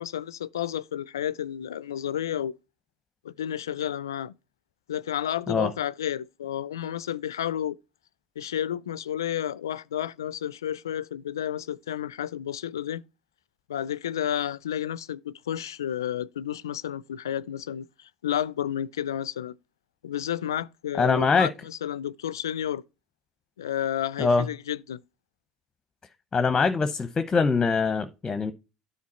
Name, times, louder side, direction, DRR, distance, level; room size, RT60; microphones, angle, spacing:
voice 1, 0.0-2.5 3.2-4.3 4.9-7.8 8.4-13.0 13.7-19.5 20.0-22.8 23.6-25.0, left 10 dB, 85° left, 0.3 m, -31 dB
voice 2, 21.0-21.5 24.2-24.5 26.3-28.5, left 4 dB, 25° left, 0.8 m, -23 dB
9.6 x 4.4 x 4.2 m
hypercardioid pair, 65°, 2 cm